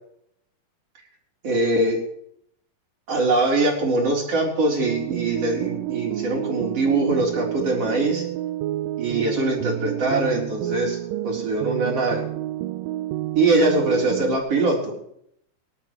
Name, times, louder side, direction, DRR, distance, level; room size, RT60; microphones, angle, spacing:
voice 1, 1.4-2.0 3.1-8.3 9.0-11.0 11.2-12.2 13.3-15.0, right 2 dB, 45° right, -2 dB, 4.8 m, -22 dB
sound 1, 4.8-14.4, right 14 dB, 85° right, 2.3 m, -29 dB
24.5 x 12.0 x 3.2 m, 0.72 s
omnidirectional pair, 3.9 m